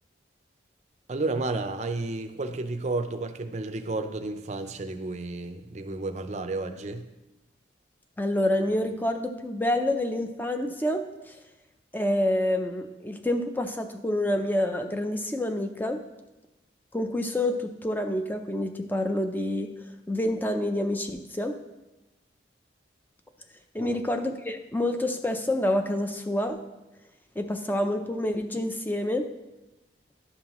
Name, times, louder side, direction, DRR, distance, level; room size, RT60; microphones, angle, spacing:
voice 1, 1.1-7.1 23.8-24.0, right 2 dB, 40° right, 8 dB, 0.5 m, -32 dB
voice 2, 8.2-11.4 11.9-16.0 16.9-19.7 20.1-21.5 23.7-26.6 27.4-29.3, left 1 dB, 10° left, 6 dB, 0.5 m, -27 dB
11.5 x 5.6 x 3.0 m, 1.0 s
head